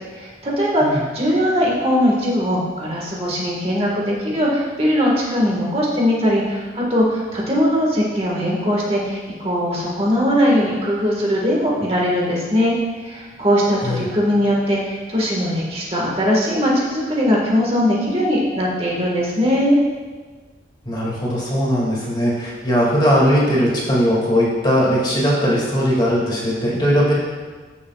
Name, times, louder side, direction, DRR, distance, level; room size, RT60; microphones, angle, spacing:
voice 1, 0.1-12.7 13.0-19.8, equal, 35° right, -3 dB, 1.6 m, -20 dB
voice 2, 20.9-27.1, equal, 25° left, -5 dB, 2.2 m, -19 dB
15.0 x 7.1 x 2.4 m, 1.4 s
head